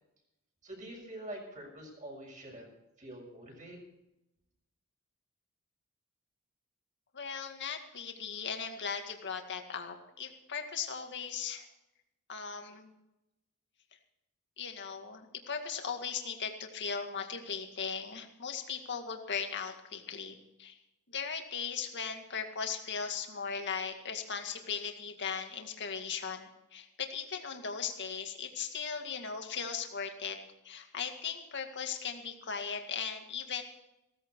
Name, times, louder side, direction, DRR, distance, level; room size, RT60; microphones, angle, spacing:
voice 1, 0.6-2.7 3.0-3.8, right 1 dB, 35° right, 0 dB, 6.7 m, -45 dB
voice 2, 7.1-11.7 12.3-12.9 14.6-20.8 21.1-30.4 30.6-33.6, left 6 dB, 55° left, 4 dB, 2.1 m, -38 dB
16.5 x 14.5 x 4.7 m, 0.92 s
head